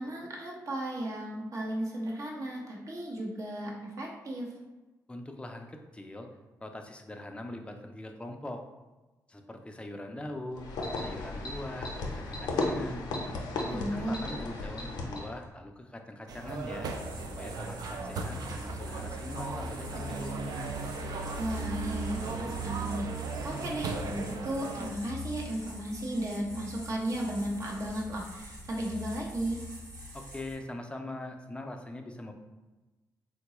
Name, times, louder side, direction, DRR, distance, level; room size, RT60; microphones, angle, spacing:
voice 1, 0.0-4.5 13.7-14.3 21.4-29.6, right 1 dB, 50° right, -2 dB, 0.8 m, -35 dB
voice 2, 5.1-6.3 6.6-8.6 9.3-10.7 11.0-13.1 13.6-16.9 17.4-20.7 30.1-32.3, left 1 dB, 15° left, 4 dB, 0.4 m, -42 dB
sound 1, 10.6-15.4, left 2 dB, 85° left, 0.5 m, -35 dB
sound 2, 16.3-24.9, right 4 dB, 70° right, 0.4 m, -36 dB
sound 3, 16.9-30.5, left 2 dB, 90° right, 1.4 m, -45 dB
3.8 x 2.2 x 2.9 m, 1.1 s
cardioid pair, 80°, 7 cm